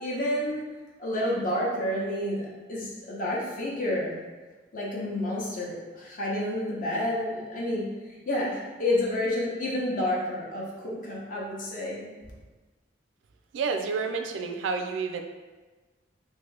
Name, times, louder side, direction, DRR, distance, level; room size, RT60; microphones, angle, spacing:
voice 1, 0.0-0.6 1.0-4.2 4.7-12.1, left 1 dB, 45° left, -5 dB, 0.7 m, -30 dB
voice 2, 13.5-15.2, right 5 dB, 85° right, 6 dB, 0.3 m, -29 dB
2.8 x 2.6 x 3.2 m, 1.3 s
head